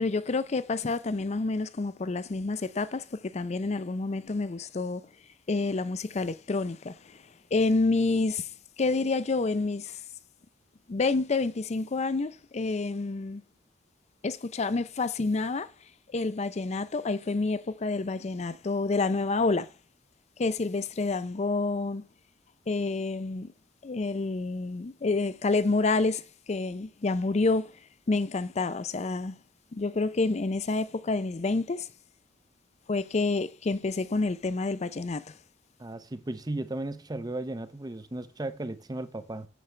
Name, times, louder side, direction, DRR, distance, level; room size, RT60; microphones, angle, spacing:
voice 1, 0.0-5.1 5.5-7.2 7.5-8.5 8.8-10.0 10.9-13.4 14.2-15.7 16.1-19.7 20.4-22.0 22.7-23.5 23.8-26.2 26.5-27.7 28.1-29.4 29.7-31.9 32.9-35.3, left 3 dB, 35° left, 0.5 m, -28 dB
voice 2, 35.8-39.5, right 2 dB, 20° right, 0.6 m, -35 dB
9.2 x 7.2 x 3.3 m
head